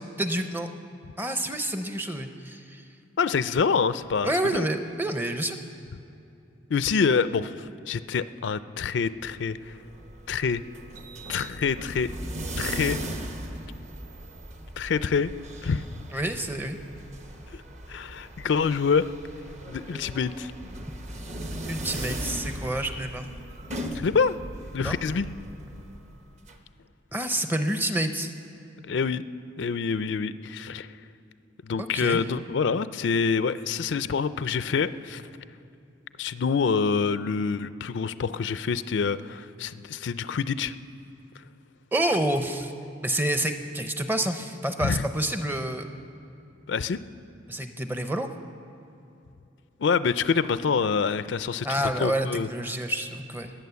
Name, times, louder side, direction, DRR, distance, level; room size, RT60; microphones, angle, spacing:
voice 1, 0.2-0.7 1.2-2.8 4.2-5.6 16.1-16.8 21.7-23.3 24.8-25.0 27.1-28.3 31.8-32.2 41.9-42.7 43.0-45.9 47.5-48.3 51.6-53.5, right 1 dB, 10° right, 7 dB, 0.6 m, -28 dB
voice 2, 3.2-4.6 6.7-9.8 10.3-10.6 11.3-12.1 12.6-13.0 14.8-15.3 15.6-15.8 17.5-17.6 17.9-19.1 19.7-20.5 23.9-24.4 24.7-25.3 28.8-29.2 29.6-30.9 31.6-35.2 36.2-40.7 44.8-45.0 46.7-47.0 49.8-51.7 52.0-52.5, left 5 dB, 70° left, 14 dB, 0.4 m, -26 dB
sound 1, 9.5-26.5, right 1 dB, 35° right, 1.0 m, -38 dB
20.0 x 9.0 x 6.9 m, 2.8 s
head